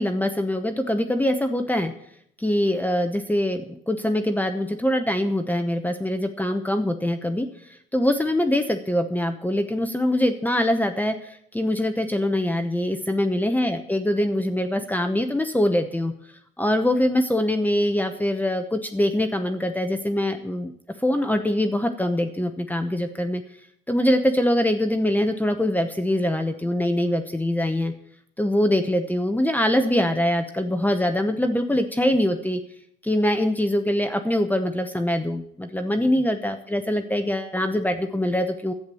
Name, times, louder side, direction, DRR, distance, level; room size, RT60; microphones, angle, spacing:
voice 1, 0.0-1.9 2.4-16.1 16.6-20.7 21.0-23.4 23.9-27.9 28.4-32.6 33.0-38.7, left 1 dB, 10° left, 6 dB, 1.0 m, -23 dB
11.5 x 8.0 x 7.0 m, 0.69 s
cardioid pair, 90°, 20 cm